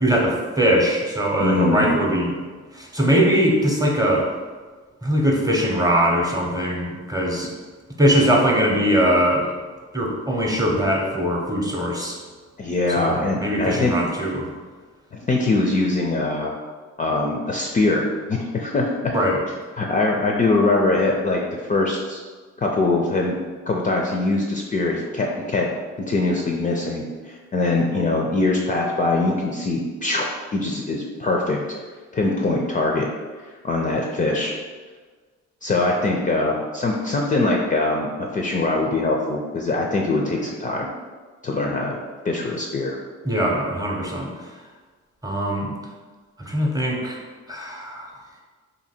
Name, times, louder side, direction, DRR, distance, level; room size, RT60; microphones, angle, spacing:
voice 1, 0.0-2.3 2.7-4.2 5.0-7.5 8.0-9.5 9.9-12.2 13.0-14.5 19.1-19.4 43.2-44.3 45.2-45.7 46.4-47.2 47.5-48.1, equal, 10° right, -1 dB, 0.7 m, -21 dB
voice 2, 1.4-2.0 12.6-14.0 15.1-16.6 17.0-19.2 19.8-22.2 22.6-23.3 23.7-25.7 26.0-31.6 32.1-33.1 33.6-34.5 35.6-40.9 41.4-42.0 42.2-42.9, left 2 dB, 25° left, 0 dB, 0.4 m, -22 dB
2.8 x 2.7 x 4.2 m, 1.4 s
cardioid pair, 90°, 30 cm